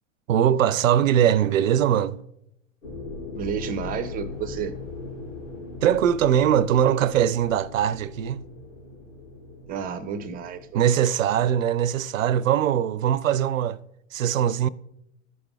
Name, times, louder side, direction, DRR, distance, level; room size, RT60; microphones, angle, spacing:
voice 1, 0.3-2.2 5.8-8.5 10.7-13.8 14.1-14.7, right 10 dB, 85° right, 0.5 m, -21 dB
sound 1, 2.8-12.6, left 3 dB, 80° left, 2.7 m, -40 dB
voice 2, 3.3-4.7 9.7-10.8, right 7 dB, 25° right, 0.5 m, -31 dB
13.5 x 5.1 x 2.4 m
hypercardioid pair, 110°, 39 cm